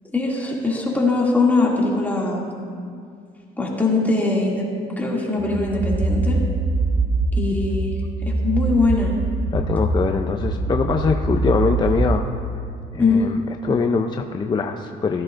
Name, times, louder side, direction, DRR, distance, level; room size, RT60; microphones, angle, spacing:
voice 1, 0.1-2.5 3.6-4.7 5.0-6.4 7.4-7.9 8.4-9.1 13.0-13.2, left 3 dB, 10° left, -4 dB, 2.4 m, -21 dB
sound 1, 5.4-12.2, right 2 dB, 35° right, 1.2 m, -23 dB
voice 2, 9.5-12.2 12.9-15.2, left 5 dB, 25° left, 4 dB, 0.5 m, -23 dB
16.0 x 13.5 x 2.6 m, 2.3 s
cardioid pair, 110°, 17 cm